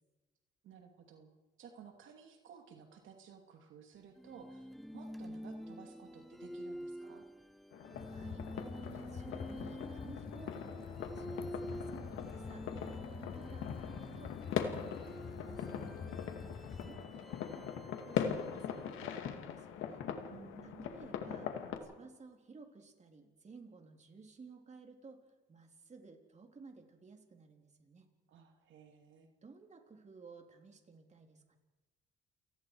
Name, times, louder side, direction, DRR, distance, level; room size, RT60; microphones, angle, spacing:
voice 1, 0.6-1.3 1.6-7.3 20.3-20.9 28.3-29.3, right 7 dB, 80° right, 4 dB, 2.7 m, -56 dB
sound 1, 4.2-19.3, equal, ahead, 0.7 m, -49 dB
sound 2, 7.7-21.8, left 8 dB, 90° left, 2.3 m, -41 dB
sound 3, 7.9-16.9, left 5 dB, 50° left, 4.6 m, -48 dB
voice 2, 8.1-8.4 8.9-12.7 13.0-20.0 20.6-21.5 21.8-25.2 25.5-28.1 29.4-31.6, right 4 dB, 35° right, 3 dB, 3.6 m, -56 dB
29.0 x 19.0 x 4.9 m, 1.2 s
cardioid pair, 90°, 20 cm